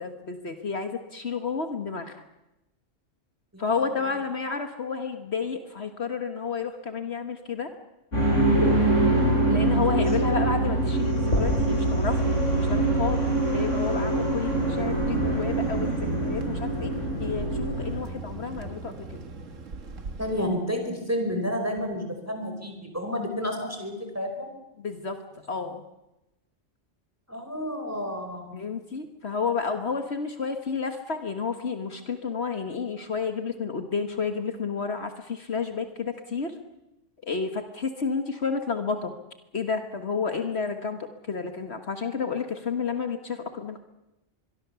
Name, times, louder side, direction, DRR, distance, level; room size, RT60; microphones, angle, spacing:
voice 1, 0.0-2.2 3.6-7.7 9.5-12.2 12.6-13.3 13.5-16.9 17.2-18.9 24.8-25.2 25.5-25.8 28.5-36.5 37.2-39.1 39.5-41.0 41.3-43.8, left 5 dB, 55° left, 7 dB, 1.7 m, -31 dB
voice 2, 3.5-3.8 9.7-10.0 20.2-24.5 27.3-28.7, equal, 10° right, 4 dB, 5.0 m, -31 dB
sound 1, 8.1-18.0, right 1 dB, 75° left, 8.5 m, -24 dB
Thunder, 14.5-20.4, right 3 dB, 80° right, 2.0 m, -35 dB
25.0 x 22.5 x 7.0 m, 0.93 s
omnidirectional pair, 1.3 m